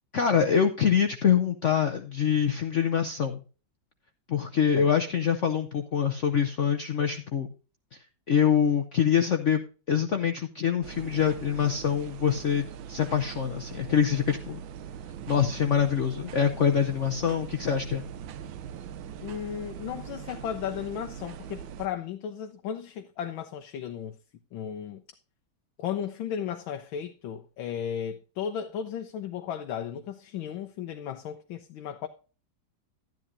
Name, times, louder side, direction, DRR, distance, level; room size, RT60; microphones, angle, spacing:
voice 1, 0.1-3.4 4.3-7.5 8.3-14.6 15.3-18.0, left 8 dB, 60° left, 0.8 m, -25 dB
sound 1, 10.8-21.9, right 8 dB, 90° right, 1.5 m, -41 dB
voice 2, 19.2-24.1 24.5-25.0 25.8-32.1, left 9 dB, 85° left, 1.5 m, -35 dB
12.0 x 10.5 x 2.6 m
omnidirectional pair, 2.1 m